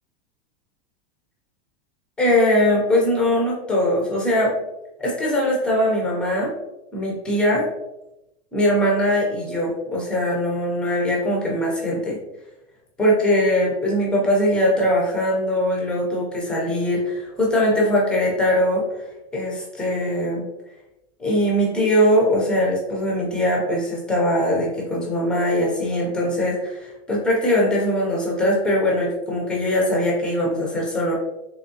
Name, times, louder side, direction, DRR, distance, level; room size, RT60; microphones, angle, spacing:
voice 1, 2.2-4.5 5.0-6.5 6.9-7.7 8.5-12.2 13.0-18.9 19.3-20.4 21.2-31.2, equal, 5° left, -3 dB, 0.3 m, -21 dB
3.4 x 3.1 x 2.6 m, 0.94 s
supercardioid pair, 155°, 32 cm